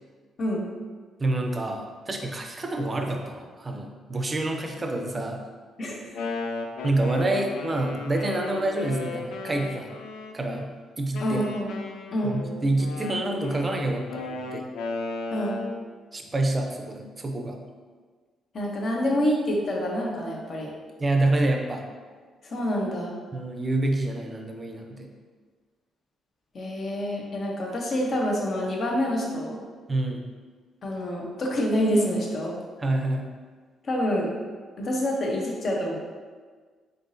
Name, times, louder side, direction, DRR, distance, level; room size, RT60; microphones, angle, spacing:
voice 1, 0.4-0.7 5.8-6.0 11.2-11.8 12.1-12.4 15.3-15.6 18.5-20.7 22.4-23.1 26.5-29.6 30.8-32.5 33.8-34.3 34.8-36.0, equal, 50° left, -1 dB, 0.8 m, -27 dB
voice 2, 1.2-5.4 6.8-9.9 10.3-10.7 11.0-11.4 12.2-14.6 16.1-17.6 21.0-21.8 23.3-25.1 29.9-30.3 32.8-33.3, right 2 dB, 25° right, 3 dB, 0.5 m, -27 dB
Wind instrument woodwind instrument, 5.9-10.7 11.1-15.8, left 4 dB, 75° left, 0.4 m, -35 dB
3.8 x 3.6 x 2.6 m, 1.5 s
cardioid pair, 90°, 0 cm